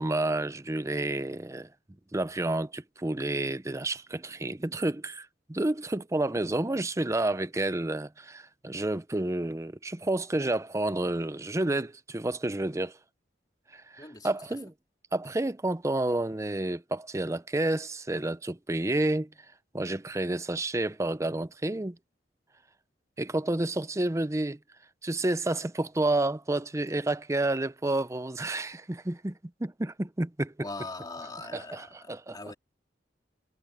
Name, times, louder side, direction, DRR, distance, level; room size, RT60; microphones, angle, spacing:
voice 1, 0.0-1.7 2.1-13.0 13.7-14.7 15.1-19.3 19.7-22.0 23.2-24.6 25.0-30.7 31.5-32.5, right 2 dB, 15° right, 0.6 m, -30 dB
voice 2, 14.0-14.3 30.6-32.5, left 3 dB, 20° left, 2.7 m, -41 dB
head